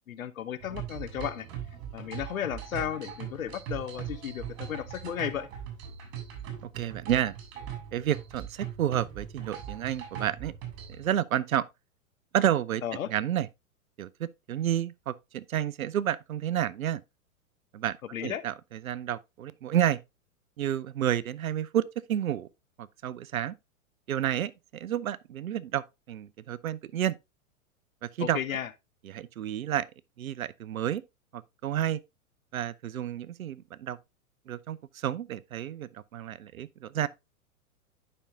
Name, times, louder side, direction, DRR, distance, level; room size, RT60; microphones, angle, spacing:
voice 1, 0.1-1.5 1.9-5.5 12.8-13.1 18.1-18.4 28.2-28.7, left 9 dB, 70° left, 0.9 m, -34 dB
sound 1, 0.6-11.1, right 9 dB, 45° right, 3.5 m, -40 dB
voice 2, 6.7-7.3 7.9-10.5 10.9-11.7 12.3-12.8 13.1-13.5 14.0-17.0 17.7-18.0 18.2-20.0 20.6-21.8 22.1-22.5 22.8-23.5 24.1-27.1 28.0-28.4 29.0-29.9 30.2-31.0 31.3-32.0 32.5-34.0 34.5-37.1, right 11 dB, 70° right, 0.7 m, -30 dB
9.9 x 5.5 x 2.7 m
figure-of-eight pair, 105°, 43 cm